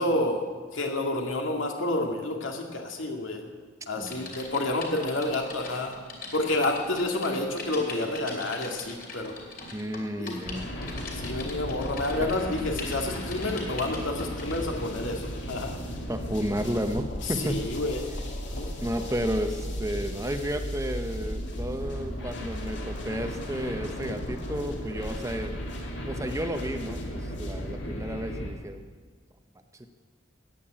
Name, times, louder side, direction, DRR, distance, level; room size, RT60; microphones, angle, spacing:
voice 1, 0.0-3.4 3.9-5.9 6.3-9.4 10.2-10.4 11.2-15.8 17.4-18.0 18.5-18.7, left 2 dB, 80° left, 2 dB, 2.3 m, -29 dB
Typing, 4.0-14.8 15.3-15.5, left 3 dB, 45° left, 2.8 m, -42 dB
voice 2, 4.0-4.3 9.7-10.7 12.2-12.3 16.1-17.6 18.8-25.6 25.9-28.8 29.7-29.9, equal, 15° right, 7 dB, 0.8 m, -32 dB
sound 1, 10.4-28.5, equal, 65° left, 2.6 m, -35 dB
14.5 x 9.3 x 8.8 m, 1.5 s
head